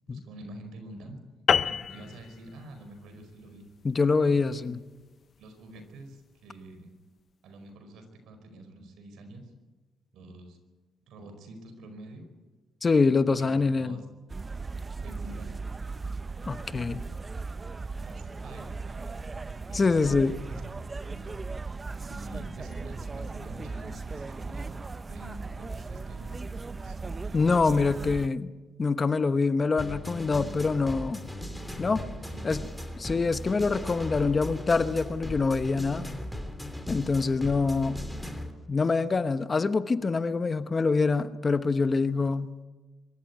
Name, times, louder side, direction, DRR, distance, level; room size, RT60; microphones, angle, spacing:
voice 1, 0.1-1.2 1.6-3.7 4.2-4.6 5.4-6.9 7.4-9.5 10.1-10.6 11.1-12.3 13.4-14.0 15.0-15.5 17.8-19.3 19.7-20.0 20.5-20.6 21.1-21.4 22.1-27.5 27.8-28.3 32.2-32.6 37.4-37.6, right 1 dB, 80° right, 7 dB, 4.9 m, -46 dB
sound 1, 1.5-6.2, left 6 dB, 50° left, 0.6 m, -31 dB
voice 2, 3.8-4.8 12.8-14.0 16.5-17.0 19.7-20.4 27.3-28.5 28.8-31.2 31.8-32.0 32.4-32.6 33.0-36.1 36.9-38.0 38.7-42.5, left 4 dB, 30° left, 11 dB, 1.0 m, -25 dB
sound 2, 14.3-28.3, right 3 dB, 25° right, 0.6 m, -37 dB
sound 3, 29.8-38.5, left 1 dB, 5° left, 3.1 m, -38 dB
24.0 x 14.0 x 9.5 m, 1.3 s
cardioid pair, 90°, 0 cm